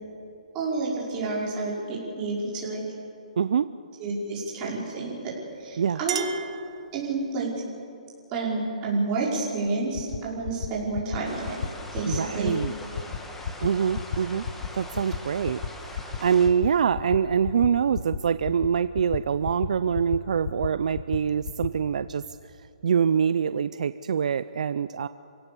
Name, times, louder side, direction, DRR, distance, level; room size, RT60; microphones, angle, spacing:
voice 1, 0.5-2.8 4.0-5.3 5.6-6.2 6.9-7.5 8.3-11.5 11.9-12.6, right 3 dB, 20° right, -5 dB, 5.1 m, -29 dB
voice 2, 3.4-3.7 5.8-6.0 12.1-12.7 13.6-14.4 14.7-22.2 22.8-25.1, right 7 dB, 60° right, 13 dB, 0.5 m, -25 dB
Chink clink, 5.5-7.4, right 8 dB, 40° right, 1.3 m, -36 dB
sound 1, 9.7-9.8 9.9-10.2 10.4-10.7 10.9-11.2 11.4-11.7 11.9-12.2 12.4-12.7 12.9-13.2 13.4-13.7 13.9-14.2 14.4-14.7 14.9-15.2 15.4-15.7 15.9-16.2 16.4-16.7 16.9-17.2 17.4-17.7 17.9-18.2 18.4-18.7 18.9-19.2 19.4-19.7 19.9-20.2 20.4-20.7 20.9-21.2 21.4-21.7, left 7 dB, 45° left, 1.3 m, -31 dB
sound 2, 11.2-16.5, left 2 dB, 5° left, 1.5 m, -42 dB
28.0 x 17.0 x 6.9 m, 2.6 s
hypercardioid pair, 165°, 4 cm